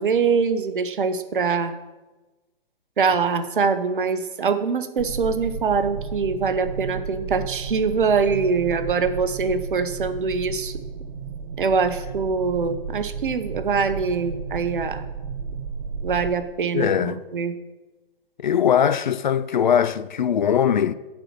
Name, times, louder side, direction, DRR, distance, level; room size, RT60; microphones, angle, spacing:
voice 1, 0.0-1.8 3.0-10.8 11.6-15.1 16.0-17.5, right 5 dB, 60° right, 0.8 m, -23 dB
sound 1, 5.0-16.3, right 5 dB, 35° right, 0.4 m, -33 dB
voice 2, 16.7-17.2 18.4-20.9, left 8 dB, 50° left, 0.4 m, -20 dB
9.0 x 4.3 x 7.3 m
figure-of-eight pair, 120°, 29 cm